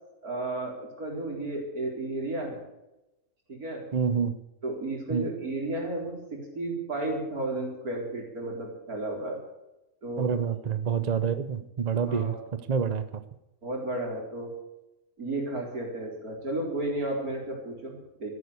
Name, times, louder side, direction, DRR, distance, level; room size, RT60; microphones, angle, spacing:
voice 1, 0.2-2.6 3.5-3.8 4.6-9.4 10.0-10.3 12.0-12.4 13.6-14.5 15.2-18.4, right 2 dB, 80° right, 0 dB, 4.7 m, -33 dB
voice 2, 3.9-4.4 5.1-5.3 10.2-13.2, right 6 dB, 35° right, 12 dB, 0.8 m, -28 dB
14.0 x 11.5 x 8.1 m, 0.93 s
omnidirectional pair, 1.5 m